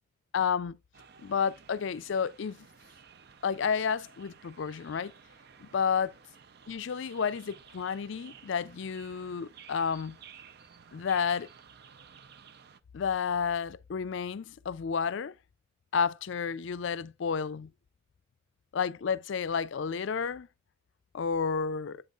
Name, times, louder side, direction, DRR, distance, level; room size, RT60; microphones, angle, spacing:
voice 1, 0.3-0.8 1.2-2.6 3.4-5.1 5.6-6.1 6.7-10.2 10.9-11.5 12.9-15.3 15.9-17.7 18.7-20.5 21.1-22.0, left 6 dB, 60° left, 0.4 m, -31 dB
sound 1, 0.9-12.8, right 7 dB, 50° right, 0.5 m, -54 dB
8.1 x 5.4 x 2.4 m
head